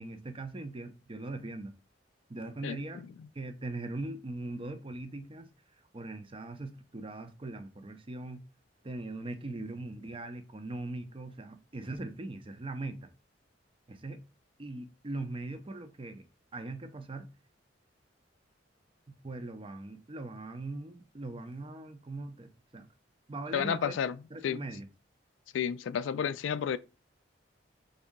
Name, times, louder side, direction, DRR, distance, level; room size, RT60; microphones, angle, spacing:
voice 1, 0.0-1.7 2.3-3.1 3.3-5.5 5.9-8.4 8.8-13.1 13.9-14.2 14.6-16.3 16.5-17.3 19.2-22.9 23.3-24.0 24.3-24.9, right 2 dB, 30° right, 0.5 m, -40 dB
voice 2, 23.5-24.2 24.4-24.6 25.5-26.8, left 8 dB, 90° left, 0.3 m, -31 dB
4.0 x 2.7 x 3.6 m
head